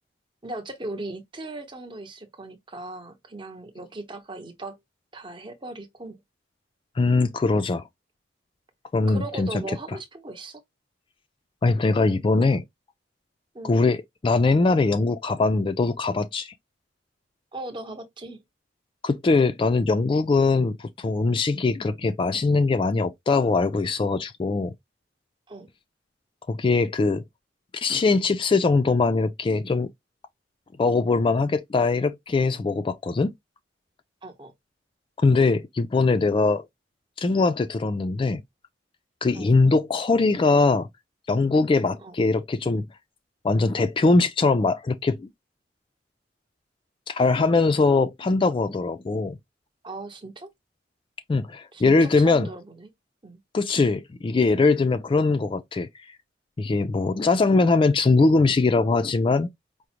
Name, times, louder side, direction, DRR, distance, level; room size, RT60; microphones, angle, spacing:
voice 1, 0.4-4.8 5.1-6.2 9.1-10.6 13.5-13.7 17.5-18.4 25.5-25.7 34.2-34.5 39.3-39.5 42.0-42.1 49.8-50.5 51.7-52.9 53.2-53.4, right 2 dB, 25° right, 0.8 m, -38 dB
voice 2, 7.0-7.9 8.9-9.8 11.6-12.6 13.6-16.5 19.0-24.7 26.5-27.2 27.7-29.9 30.8-33.3 35.2-36.6 37.2-38.4 39.2-40.9 41.3-42.8 43.4-45.3 47.1-49.4 51.3-52.5 53.5-55.9 56.6-59.5, left 3 dB, 30° left, 0.3 m, -21 dB
4.9 x 2.1 x 2.9 m
head